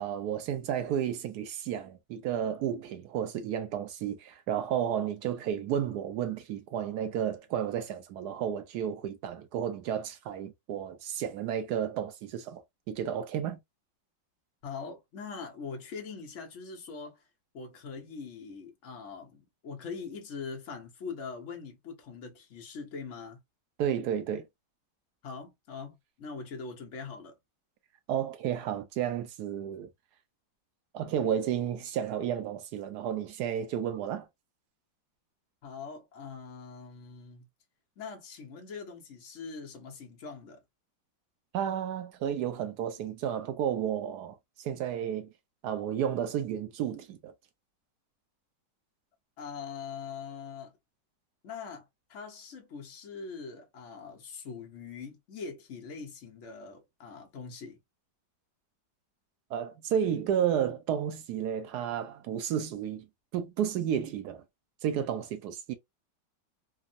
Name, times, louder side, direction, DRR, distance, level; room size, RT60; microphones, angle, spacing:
voice 1, 0.0-13.6 23.8-24.5 28.1-29.9 30.9-34.3 41.5-45.3 45.6-47.3 59.5-63.1 63.3-64.4 64.8-65.7, right 9 dB, 70° right, 1.0 m, -32 dB
voice 2, 14.6-17.2 17.5-23.4 25.2-27.4 35.6-37.4 38.0-40.6 49.4-50.7 51.4-57.8, left 5 dB, 60° left, 0.8 m, -42 dB
3.5 x 2.0 x 2.5 m
omnidirectional pair, 2.0 m